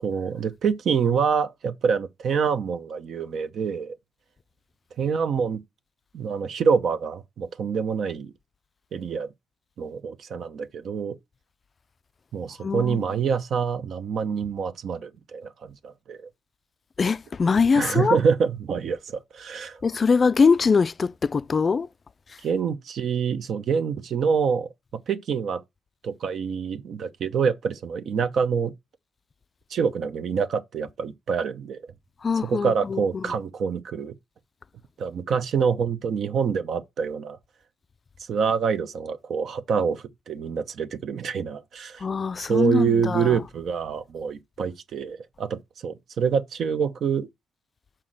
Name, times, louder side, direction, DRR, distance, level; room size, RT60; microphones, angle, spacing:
voice 1, 0.0-4.0 5.0-5.6 6.1-8.3 8.9-9.3 9.8-11.2 12.3-16.3 17.7-19.8 22.4-24.7 25.1-25.6 26.0-28.7 29.7-31.8 32.4-34.1 35.0-37.4 38.3-42.0 42.4-47.3, right 6 dB, 65° right, 0.8 m, -26 dB
voice 2, 12.6-13.0 17.0-18.2 19.8-21.9 32.2-33.2 42.0-43.4, left 5 dB, 35° left, 0.3 m, -22 dB
5.8 x 4.4 x 6.3 m
cardioid pair, 90°, 0 cm